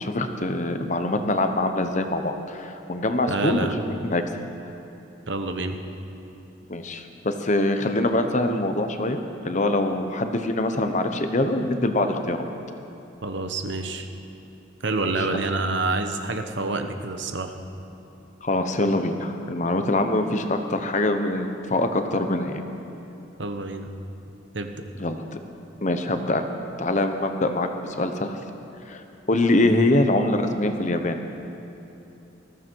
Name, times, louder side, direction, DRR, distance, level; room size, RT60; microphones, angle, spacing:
voice 1, 0.0-4.2 6.7-12.4 15.0-15.1 18.4-22.5 25.0-25.4 25.8-26.4 26.8-28.4 28.9-31.2, left 2 dB, 40° left, 7 dB, 1.0 m, -24 dB
voice 2, 3.3-3.8 5.3-5.8 13.2-14.1 14.8-17.5 23.4-23.9 24.5-24.8, right 3 dB, 65° right, 6 dB, 1.1 m, -27 dB
20.0 x 15.0 x 4.7 m, 2.9 s
head